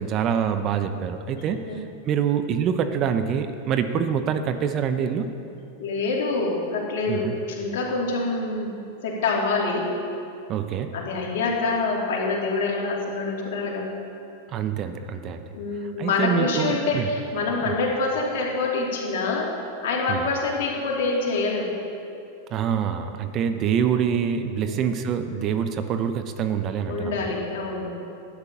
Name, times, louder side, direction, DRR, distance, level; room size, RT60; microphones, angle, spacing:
voice 1, 0.0-5.3 7.1-7.4 10.5-10.9 14.5-15.4 16.0-17.1 17.7-17.8 20.1-20.3 22.5-27.3, right 8 dB, 40° right, 8 dB, 0.8 m, -25 dB
voice 2, 1.4-1.8 5.8-8.7 9.0-9.9 10.9-13.9 15.5-19.5 19.8-21.7 24.7-24.8 25.3-25.4 26.9-27.9, left 3 dB, 65° left, -3 dB, 2.9 m, -26 dB
12.0 x 9.7 x 5.6 m, 2.6 s
hypercardioid pair, 100°, 0 cm